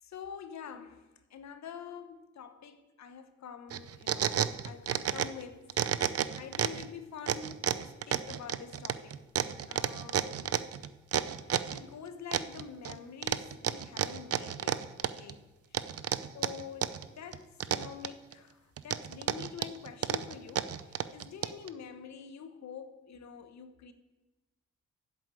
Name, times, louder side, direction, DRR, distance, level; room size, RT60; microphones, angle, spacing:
voice 1, 0.0-9.2 9.7-10.6 11.5-15.8 16.3-23.9, left 7 dB, 70° left, 1.1 m, -47 dB
sound 1, 3.7-5.4 5.7-6.9 7.3-11.8 12.3-12.9 13.2-15.3 15.7-17.1 17.3-18.3 18.8-21.7, right 9 dB, 55° right, 0.6 m, -31 dB
7.9 x 7.6 x 8.4 m
supercardioid pair, 45°, 29 cm